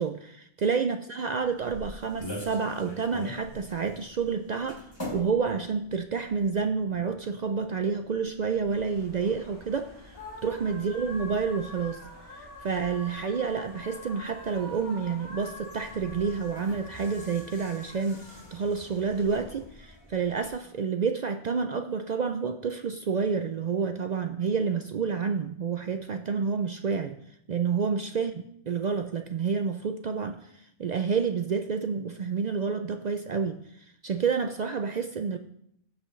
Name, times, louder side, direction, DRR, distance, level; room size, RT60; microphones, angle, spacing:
voice 1, 0.0-12.0 12.3-27.2 27.5-35.4, right 5 dB, 60° right, 8 dB, 0.4 m, -29 dB
sound 1, 1.4-20.5, left 1 dB, 20° left, 2.5 m, -46 dB
sound 2, 8.7-19.2, left 2 dB, 85° left, 3.3 m, -46 dB
16.0 x 5.6 x 3.1 m, 0.70 s
omnidirectional pair, 1.2 m